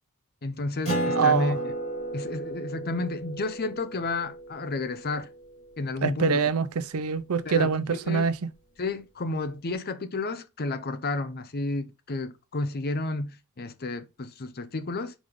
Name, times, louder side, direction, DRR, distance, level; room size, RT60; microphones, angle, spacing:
voice 1, 0.4-1.6 2.1-5.3 5.8-6.4 7.4-8.3 8.8-15.1, left 3 dB, 45° left, 0.7 m, -31 dB
Acoustic guitar, 0.8-5.8, right 1 dB, 30° left, 3.6 m, -33 dB
voice 2, 1.1-1.6 6.0-8.3, right 5 dB, 85° right, 0.5 m, -24 dB
5.2 x 5.0 x 3.7 m
head